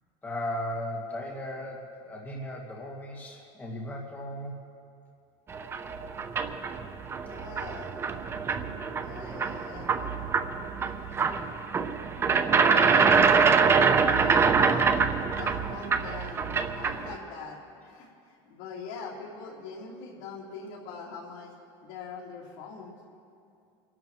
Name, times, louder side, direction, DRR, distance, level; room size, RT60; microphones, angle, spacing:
voice 1, 0.2-4.6, left 1 dB, 15° left, -2 dB, 2.0 m, -36 dB
sound 1, 5.5-17.2, right 5 dB, 20° right, 0.6 m, -25 dB
voice 2, 7.3-7.9 9.0-9.9 12.6-14.9 15.2-16.5 16.7-21.5 21.8-22.9, left 5 dB, 65° left, -4 dB, 3.4 m, -43 dB
29.0 x 12.5 x 3.1 m, 2.5 s
supercardioid pair, 145°, 12 cm